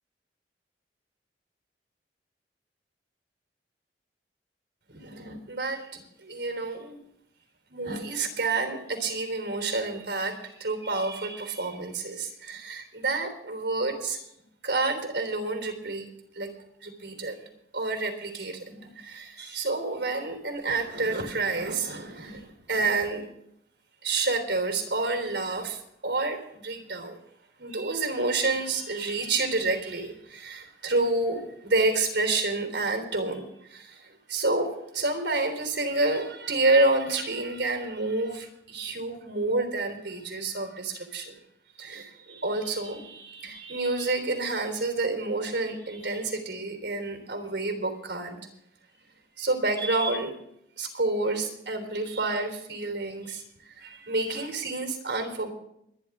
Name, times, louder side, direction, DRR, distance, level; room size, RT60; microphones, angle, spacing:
voice 1, 4.9-7.0 7.7-14.3 14.6-16.0 16.3-16.5 16.8-17.4 17.7-23.2 24.0-27.2 27.6-41.3 41.8-48.4 49.4-50.3 50.8-53.4 53.8-55.5, right 3 dB, 90° right, 5 dB, 3.5 m, -29 dB
24.5 x 10.5 x 3.7 m, 0.76 s
head